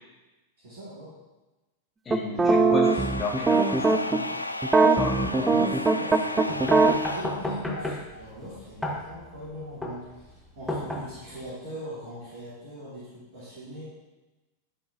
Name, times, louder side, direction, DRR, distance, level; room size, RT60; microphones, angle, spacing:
voice 1, 0.6-1.1 2.3-3.4 5.3-6.7 7.1-13.8, equal, 55° right, -10 dB, 2.4 m, -40 dB
voice 2, 2.0-2.8 3.2-4.4 4.9-5.6, left 4 dB, 20° left, -2 dB, 1.5 m, -34 dB
sound 1, 2.1-4.2 4.6-6.9, right 3 dB, 15° right, 0.4 m, -21 dB
sound 2, 2.8-8.3, left 2 dB, 85° left, 0.3 m, -34 dB
sound 3, 6.5-11.5, left 1 dB, 5° left, 1.1 m, -34 dB
11.5 x 4.5 x 2.7 m, 1.1 s
figure-of-eight pair, 90°, 0 cm